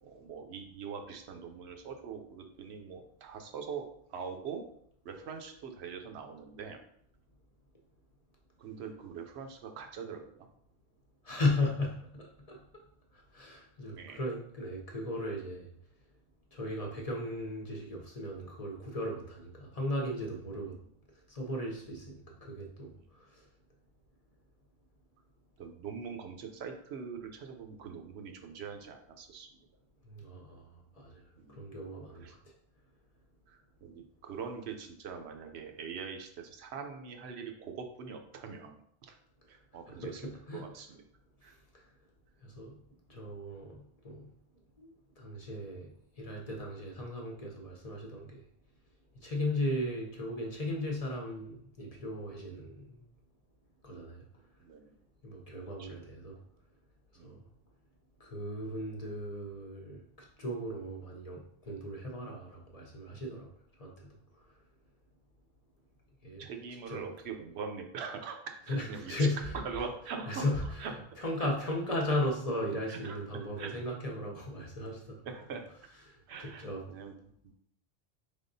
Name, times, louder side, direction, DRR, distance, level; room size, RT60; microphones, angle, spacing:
voice 1, 0.0-4.6 5.0-6.8 8.6-10.5 14.0-14.2 25.6-29.5 31.4-31.6 32.2-32.3 33.8-38.7 39.1-39.2 39.5-40.2 40.5-40.9 41.4-41.5 43.1-43.3 54.6-54.9 55.8-55.9 57.2-57.3 66.4-69.1 69.6-70.4 70.8-70.9 71.4-71.5 72.9-73.2 73.6-73.7 75.3-75.7 76.3-76.6 76.9-77.1, right 6 dB, 80° right, 4 dB, 0.9 m, -42 dB
voice 2, 11.2-12.6 13.1-15.7 16.5-20.7 21.3-23.4 30.0-30.7 31.0-31.2 31.5-32.4 39.9-40.7 42.4-42.8 43.1-44.3 44.8-44.9 45.2-45.9 46.2-48.4 49.2-52.9 53.8-54.2 55.2-56.4 57.2-57.4 58.2-63.5 63.8-64.1 66.2-66.5 66.8-67.1 68.7-69.6 70.3-75.2 75.9-76.9, left 1 dB, 40° left, -1 dB, 0.7 m, -36 dB
4.5 x 3.5 x 2.6 m, 0.68 s
omnidirectional pair, 1.1 m